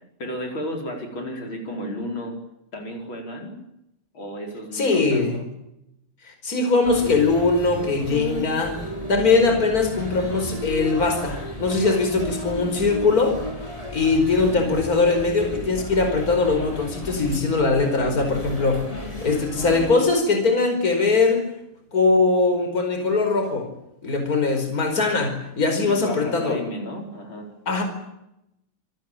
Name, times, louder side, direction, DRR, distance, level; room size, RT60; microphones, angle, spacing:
voice 1, 0.2-2.4 2.7-3.6 4.1-5.4 25.8-27.6, equal, 65° left, 2 dB, 5.8 m, -33 dB
voice 2, 4.7-5.4 6.3-8.8 9.1-13.4 13.6-21.4 21.9-23.7 24.0-26.6 27.7-27.8, left 3 dB, 40° left, 5 dB, 5.4 m, -21 dB
sound 1, 6.8-19.9, left 1 dB, 15° left, 5.8 m, -33 dB
27.5 x 18.5 x 9.1 m, 0.84 s
omnidirectional pair, 2.4 m